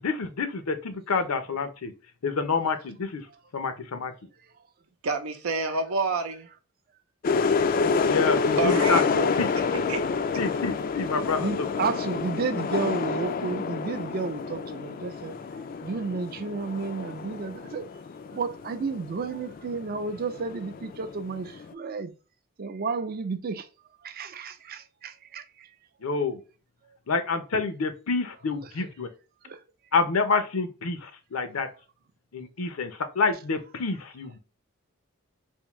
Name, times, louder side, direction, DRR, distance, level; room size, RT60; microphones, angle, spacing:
voice 1, 0.0-1.9 2.2-3.2 3.5-4.1 8.0-9.5 10.4-11.7 26.0-26.4 27.1-29.1 29.9-31.7 32.3-34.4, left 4 dB, 80° left, 0.6 m, -28 dB
voice 2, 5.0-6.5 8.6-9.3 9.9-10.0, right 3 dB, 85° right, 0.6 m, -28 dB
sound 1, 7.2-21.7, left 5 dB, 40° left, 0.3 m, -28 dB
voice 3, 11.4-17.8 18.3-22.1 22.6-23.7 24.0-25.7 29.4-29.6, right 4 dB, 45° right, 0.4 m, -32 dB
3.6 x 2.6 x 3.0 m
head